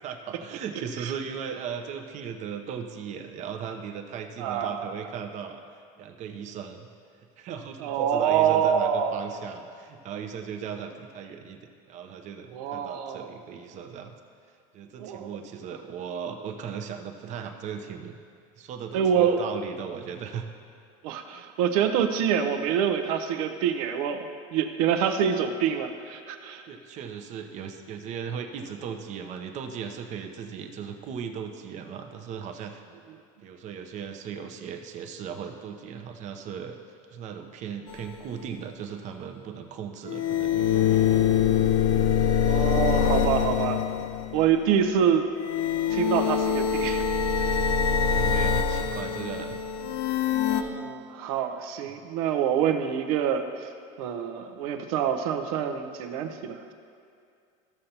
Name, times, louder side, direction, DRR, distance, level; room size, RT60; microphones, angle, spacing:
voice 1, 0.0-5.6 6.0-6.9 7.4-14.1 14.7-18.2 18.6-20.4 26.7-32.8 33.4-36.8 37.1-41.2 47.9-49.6 49.8-50.1, right 7 dB, 40° right, 5 dB, 0.8 m, -37 dB
voice 2, 4.4-4.9 7.8-9.2 12.5-13.3 15.0-15.4 18.9-19.5 21.0-26.6 42.5-43.8 44.3-45.3 45.9-47.1 47.5-47.7 50.5-53.7 54.0-56.7, right 8 dB, 75° right, 7 dB, 0.8 m, -26 dB
sound 1, 37.9-38.0 40.1-44.5 45.4-50.6, left 7 dB, 75° left, 0.7 m, -24 dB
14.5 x 6.6 x 2.9 m, 2.4 s
supercardioid pair, 130°, 18 cm